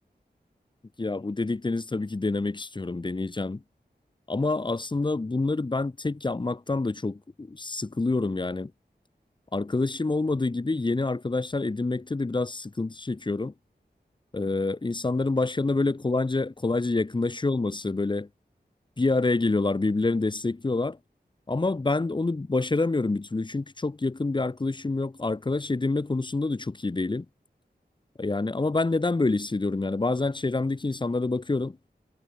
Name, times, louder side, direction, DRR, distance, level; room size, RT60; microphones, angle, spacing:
voice 1, 1.0-3.6 4.3-8.7 9.5-13.5 14.3-18.3 19.0-21.0 21.5-27.3 28.2-31.8, left 3 dB, 25° left, 0.8 m, -27 dB
wide cardioid pair, 90°, 17 cm